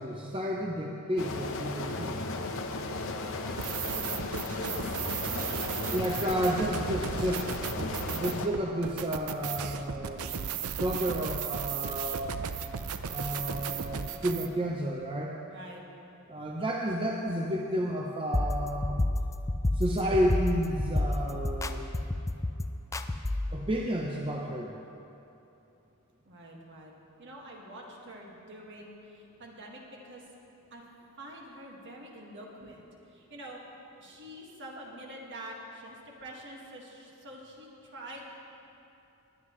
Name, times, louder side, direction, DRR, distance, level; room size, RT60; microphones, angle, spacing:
voice 1, 0.0-2.2 5.9-7.5 8.1-12.3 13.1-15.4 16.3-19.0 19.8-21.9 23.5-24.7, equal, 25° right, -1 dB, 0.7 m, -31 dB
sound 1, 1.2-8.5, left 2 dB, 65° left, 0.8 m, -35 dB
sound 2, 3.5-14.5, right 7 dB, 85° right, 0.6 m, -36 dB
voice 2, 4.2-4.6 5.2-6.6 15.5-15.8 26.2-26.9 27.2-30.2 30.7-30.8 31.2-33.6 34.0-38.2, right 1 dB, 55° right, -2 dB, 1.8 m, -46 dB
sound 3, 18.3-23.6, left 1 dB, 15° left, 0.3 m, -30 dB
20.5 x 9.4 x 3.2 m, 2.8 s
head